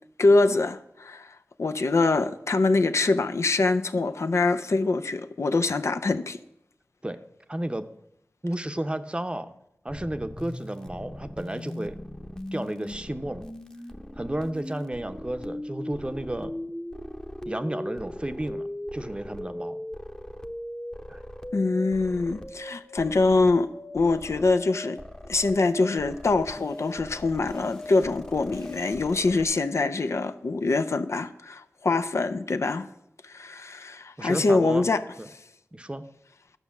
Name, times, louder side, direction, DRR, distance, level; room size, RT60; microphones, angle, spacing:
voice 1, 0.2-6.4 21.5-23.7 23.9-25.0 25.3-32.9 33.2-35.0, left 3 dB, 75° left, 0.6 m, -24 dB
voice 2, 7.5-7.9 8.4-9.5 9.8-12.0 12.5-13.5 14.2-16.5 17.4-19.8 21.1-21.2 34.2-34.8 35.2-35.3 35.7-36.0, right 1 dB, 20° right, 0.7 m, -32 dB
sound 1, 9.9-29.4, left 1 dB, 15° left, 0.9 m, -39 dB
11.5 x 5.4 x 7.1 m
cardioid pair, 45°, 5 cm